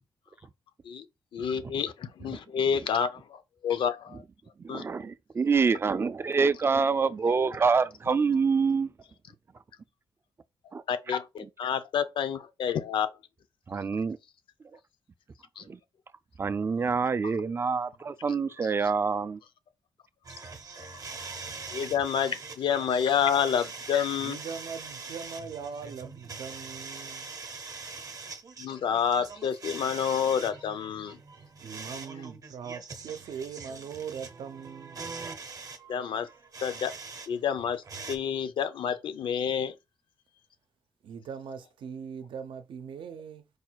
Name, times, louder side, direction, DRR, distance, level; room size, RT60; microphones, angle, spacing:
voice 1, 1.3-4.2 4.7-4.8 10.9-13.1 15.6-15.7 18.8-18.9 21.7-24.4 28.6-31.2 35.9-36.3 36.6-36.9 37.3-39.7, left 8 dB, 80° left, 0.6 m, -29 dB
voice 2, 4.6-8.9 10.7-10.8 13.7-14.2 15.7-15.8 16.4-19.4, right 5 dB, 30° right, 0.3 m, -26 dB
sound 1, 20.2-37.3 37.6-38.2, right 4 dB, 45° right, 0.7 m, -43 dB
voice 3, 24.2-27.3 31.6-35.0 41.0-43.4, right 6 dB, 80° right, 0.6 m, -40 dB
4.8 x 2.4 x 4.4 m
wide cardioid pair, 140°, 8 cm